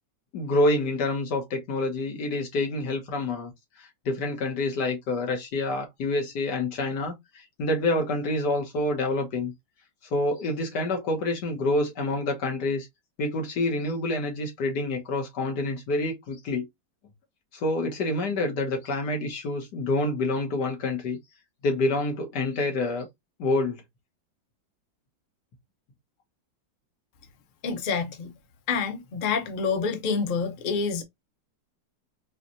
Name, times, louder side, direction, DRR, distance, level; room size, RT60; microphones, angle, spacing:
voice 1, 0.3-3.5 3.8-9.5 10.1-12.9 13.2-16.7 17.5-21.2 21.6-23.1 23.4-23.8, left 2 dB, 65° left, 1.7 m, -27 dB
voice 2, 27.6-28.3 28.7-31.0, left 5 dB, 90° left, 0.4 m, -27 dB
4.5 x 2.4 x 2.5 m
omnidirectional pair, 2.0 m